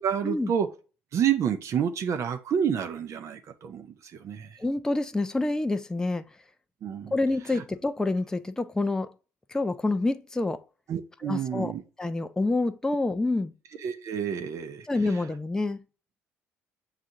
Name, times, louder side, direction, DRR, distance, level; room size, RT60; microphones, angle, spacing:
voice 1, 0.0-0.7 1.1-4.6 6.8-7.1 7.5-7.6 10.9-11.8 13.8-14.9 15.1-15.2, right 8 dB, 50° right, 0.5 m, -29 dB
voice 2, 4.6-6.2 7.1-9.1 9.5-10.6 11.2-11.7 12.0-13.5 14.8-15.8, left 2 dB, 10° left, 0.3 m, -27 dB
6.4 x 2.4 x 2.7 m
hypercardioid pair, 60°, 6 cm